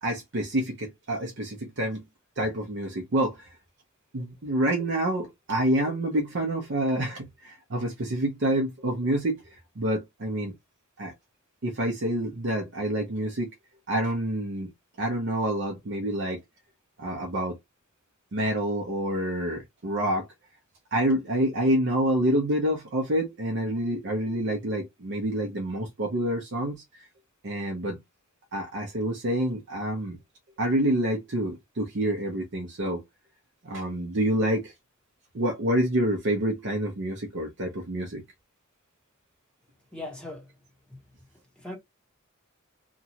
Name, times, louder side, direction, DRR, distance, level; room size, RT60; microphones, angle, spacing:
voice 1, 0.0-2.0 2.4-3.5 4.1-10.5 11.0-11.1 11.6-13.5 13.9-14.7 15.0-16.4 17.0-17.6 18.3-20.3 20.9-26.8 27.4-28.0 28.5-30.2 30.6-33.0 33.6-34.7 35.3-38.2, right 1 dB, 55° right, 0.6 m, -27 dB
voice 2, 39.9-40.5 40.9-41.0 41.6-41.8, left 2 dB, 5° left, 0.9 m, -39 dB
2.9 x 2.3 x 2.7 m
head